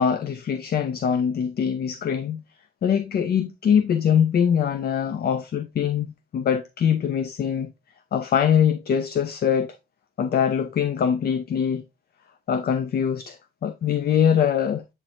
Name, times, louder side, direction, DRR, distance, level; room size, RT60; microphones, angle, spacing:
voice 1, 0.0-2.4 2.8-7.7 8.1-9.7 10.2-11.8 12.5-13.4 13.6-14.8, left 8 dB, 50° left, 0.7 m, -23 dB
8.5 x 4.4 x 2.5 m
cardioid pair, 90°, 20 cm